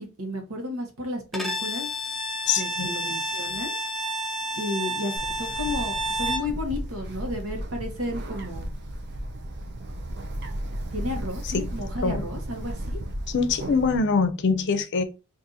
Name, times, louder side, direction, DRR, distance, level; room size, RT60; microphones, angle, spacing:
voice 1, 0.0-1.9 2.6-3.7 4.6-8.7 10.9-13.0, left 1 dB, 85° right, 1.1 m, -33 dB
Bowed string instrument, 1.3-6.5, equal, ahead, 0.4 m, -30 dB
voice 2, 2.5-2.9 11.5-11.7 12.0-12.2 13.3-15.0, left 5 dB, 55° left, 0.5 m, -24 dB
Bird, 5.2-14.0, right 1 dB, 55° right, 0.5 m, -34 dB
2.8 x 2.5 x 3.8 m
head